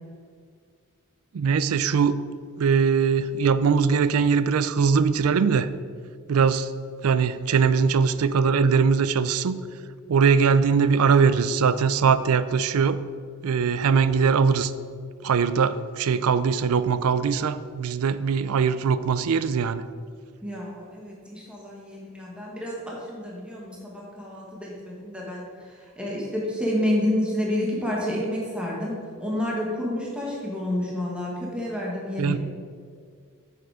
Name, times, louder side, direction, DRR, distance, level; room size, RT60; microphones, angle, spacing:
voice 1, 1.3-2.2 2.6-5.7 6.3-6.7 7.0-9.6 10.1-13.0 13.4-14.7 15.2-19.8 32.2-32.4, right 6 dB, 75° right, 14 dB, 0.4 m, -21 dB
voice 2, 20.4-32.4, left 1 dB, 5° right, -4 dB, 1.6 m, -29 dB
8.5 x 7.0 x 4.8 m, 2.1 s
head